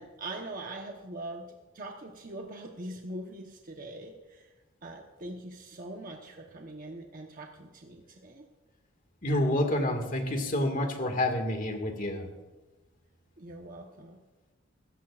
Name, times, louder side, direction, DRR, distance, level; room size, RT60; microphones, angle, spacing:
voice 1, 0.0-1.5 1.7-4.5 4.8-8.5 13.4-14.2, right 2 dB, 45° right, 1 dB, 1.1 m, -42 dB
voice 2, 9.2-12.3, left 1 dB, 45° left, 4 dB, 2.0 m, -28 dB
24.5 x 14.0 x 2.5 m, 1.2 s
head